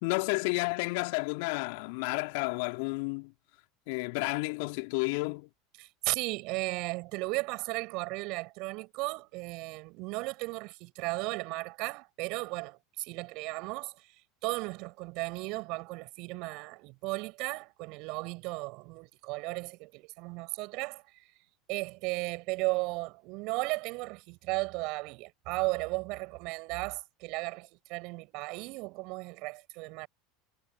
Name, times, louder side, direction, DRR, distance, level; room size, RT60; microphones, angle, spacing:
voice 1, 0.0-3.3 3.9-5.5, left 31 dB, 60° left, 2.7 m, -31 dB
voice 2, 5.8-13.9 14.4-21.0 21.7-30.1, right 26 dB, 55° right, 6.7 m, -35 dB
figure-of-eight pair, 75°, 0 cm